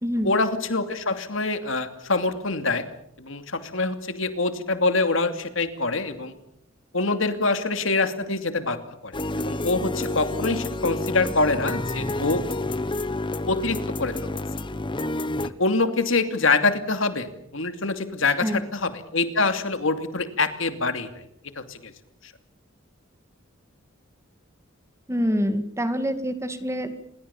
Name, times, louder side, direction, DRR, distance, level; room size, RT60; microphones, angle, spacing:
voice 1, 0.2-2.8 3.2-6.3 6.9-12.4 13.5-14.1 15.4-21.1 21.6-21.9, left 3 dB, 70° left, 9 dB, 2.7 m, -25 dB
sound 1, 9.1-15.5, left 2 dB, 25° left, 1.0 m, -29 dB
voice 2, 25.1-26.9, equal, 15° right, 9 dB, 2.1 m, -26 dB
28.0 x 21.5 x 7.2 m, 0.73 s
head